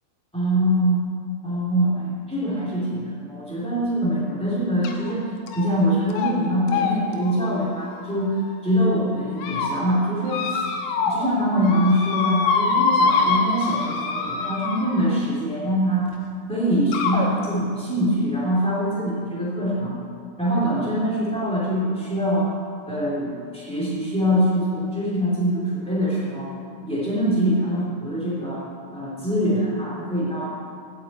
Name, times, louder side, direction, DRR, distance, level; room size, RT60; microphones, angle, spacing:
voice 1, 0.3-1.0 1.4-5.2 5.5-8.4 8.6-10.6 11.0-16.1 16.5-19.9 20.4-22.5 22.9-26.5 26.8-28.6 28.9-30.5, equal, 5° left, -7 dB, 0.5 m, -23 dB
sound 1, 4.8-5.1 5.5-5.8 6.1-6.3 6.7-8.6 9.1-9.7 10.3-11.3 11.5-15.1 16.1-16.2 16.9-17.3, left 4 dB, 75° left, 3.3 m, -25 dB
16.5 x 9.5 x 4.3 m, 2.3 s
omnidirectional pair, 6.0 m